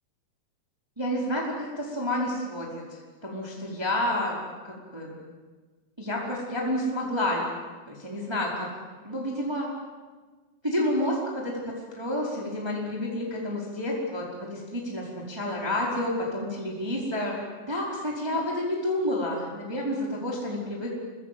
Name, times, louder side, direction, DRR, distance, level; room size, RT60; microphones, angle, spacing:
voice 1, 1.0-2.8 3.2-5.2 6.0-7.4 7.9-8.7 9.0-9.7 10.6-11.6 12.0-17.4 17.7-20.9, left 1 dB, 5° right, -3 dB, 4.2 m, -29 dB
28.0 x 24.5 x 7.7 m, 1.4 s
omnidirectional pair, 4.9 m